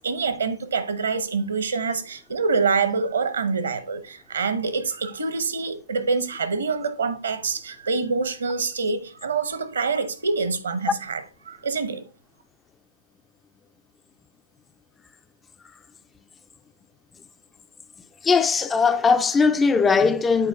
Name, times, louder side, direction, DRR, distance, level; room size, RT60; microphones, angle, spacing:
voice 1, 0.0-12.0, right 4 dB, 70° right, 1.0 m, -26 dB
voice 2, 18.2-20.5, left 5 dB, 15° left, 0.3 m, -19 dB
7.9 x 4.2 x 3.6 m
figure-of-eight pair, 120°, 0 cm